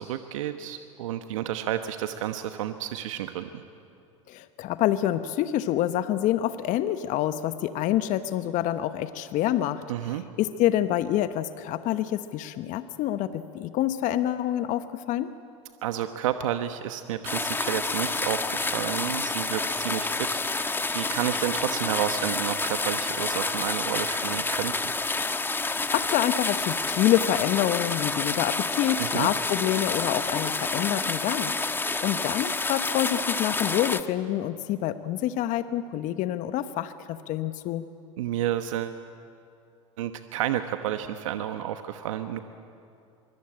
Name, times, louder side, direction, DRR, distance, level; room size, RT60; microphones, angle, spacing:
voice 1, 0.0-3.6 9.9-10.2 15.8-24.9 29.0-29.3 38.2-39.0 40.0-42.4, right 11 dB, 75° right, 8 dB, 1.1 m, -31 dB
voice 2, 4.3-9.8 10.4-15.3 25.7-31.5 32.0-37.8, left 12 dB, 50° left, 11 dB, 1.0 m, -27 dB
sound 1, 17.2-34.0, left 3 dB, 10° left, 1.2 m, -29 dB
24.0 x 24.0 x 8.8 m, 2.5 s
hypercardioid pair, 80°, 17 cm